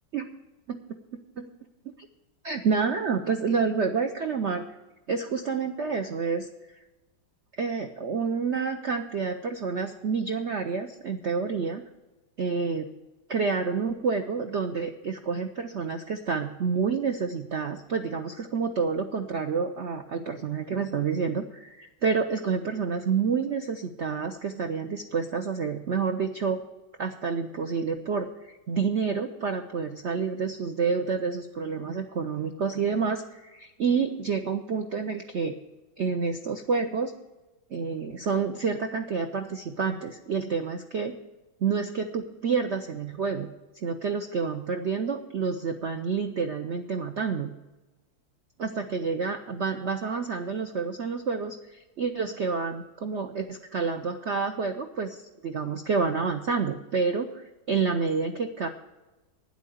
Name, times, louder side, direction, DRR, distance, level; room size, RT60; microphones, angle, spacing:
voice 1, 2.4-4.6 5.1-6.5 7.6-11.8 12.4-12.9 13.3-26.6 27.0-35.6 36.0-37.1 37.7-41.2 41.6-43.5 43.8-47.5 48.6-58.7, right 5 dB, 70° right, 6 dB, 0.6 m, -29 dB
9.8 x 8.4 x 7.9 m, 1.1 s
omnidirectional pair, 2.1 m